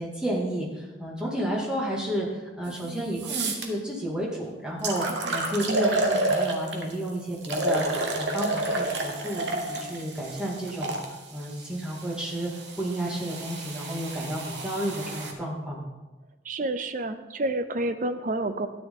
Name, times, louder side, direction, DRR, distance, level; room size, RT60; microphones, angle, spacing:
voice 1, 0.0-7.8 8.1-11.0 11.3-12.5 12.8-15.9, right 1 dB, 5° right, -4 dB, 2.3 m, -31 dB
voice 2, 2.7-3.0 5.1-5.4 16.4-18.7, right 2 dB, 45° right, 10 dB, 0.6 m, -30 dB
sound 1, 2.7-2.8 3.2-3.7 4.3-4.4 4.8-6.9 7.4-11.1 11.9-15.3, right 2 dB, 65° right, 1.3 m, -30 dB
13.0 x 9.1 x 3.8 m, 1.2 s
head